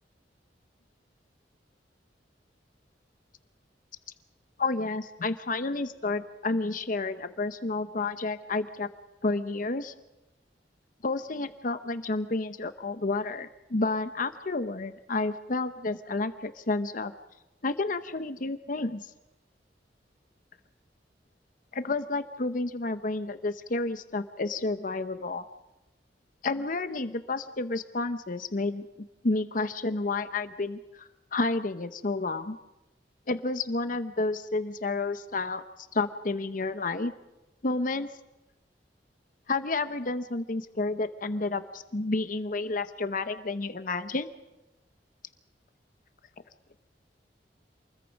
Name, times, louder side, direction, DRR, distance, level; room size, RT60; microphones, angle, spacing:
voice 1, 4.6-8.9 9.2-9.9 11.0-17.1 17.6-19.1 21.7-25.4 26.4-28.9 29.2-32.6 33.3-35.6 35.9-37.1 37.6-38.1 39.5-44.3, left 3 dB, 50° left, 11 dB, 0.9 m, -30 dB
27.5 x 21.0 x 5.3 m, 1.0 s
head